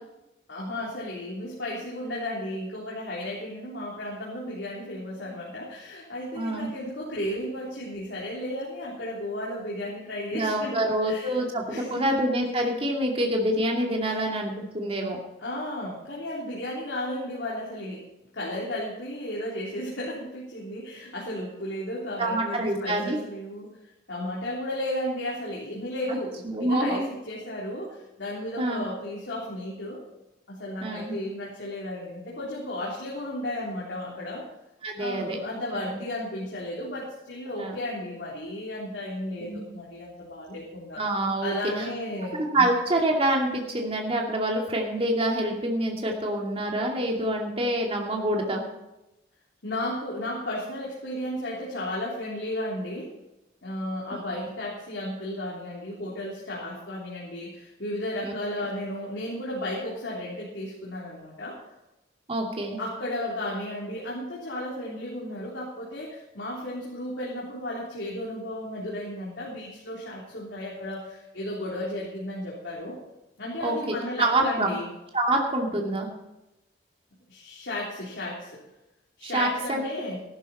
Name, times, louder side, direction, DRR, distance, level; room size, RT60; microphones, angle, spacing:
voice 1, 0.5-12.1 14.1-14.3 15.4-18.0 18.3-23.7 24.1-30.0 30.5-34.5 35.0-41.0 41.4-42.7 49.6-53.1 53.6-61.6 62.8-73.0 73.4-74.9 75.7-76.0 77.3-78.6 79.2-80.2, left 1 dB, 70° left, -5 dB, 3.5 m, -34 dB
voice 2, 6.3-6.7 10.3-15.2 22.2-23.2 26.4-27.1 28.6-28.8 30.8-31.1 34.8-35.4 37.6-37.8 39.4-39.6 41.0-41.9 42.5-48.6 58.2-58.3 62.3-62.8 73.6-74.8 75.1-76.1 79.2-79.8, right 1 dB, 30° right, 0 dB, 2.5 m, -26 dB
15.0 x 12.5 x 4.3 m, 0.95 s
head